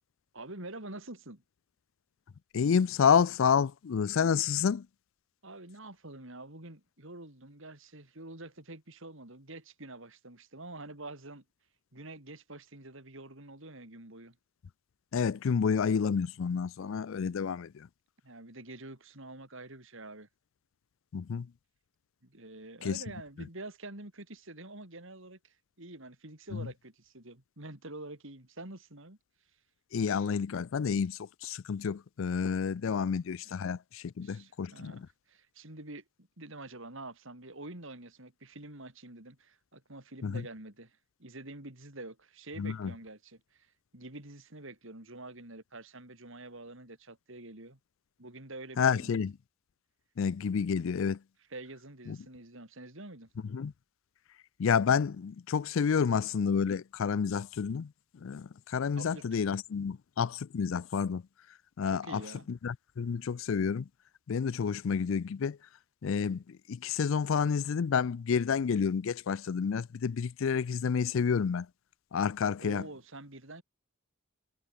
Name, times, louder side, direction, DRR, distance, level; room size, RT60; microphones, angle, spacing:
voice 1, 0.3-1.4 5.4-11.4 11.9-14.4 18.2-20.3 22.2-29.2 34.2-47.8 48.2-49.2 51.5-53.3 59.0-59.3 61.9-62.5 72.6-73.6, right 2 dB, 60° right, 3.7 m, -47 dB
voice 2, 2.5-4.9 15.1-17.9 21.1-21.5 22.8-23.0 26.5-26.7 29.9-35.1 40.2-40.4 42.6-42.9 48.8-49.3 50.2-51.2 52.1-52.2 53.5-53.7 54.6-57.9 58.2-61.2 61.8-62.2 62.5-63.9 64.3-65.6 66.0-71.7 72.1-72.9, left 6 dB, 60° left, 0.4 m, -29 dB
head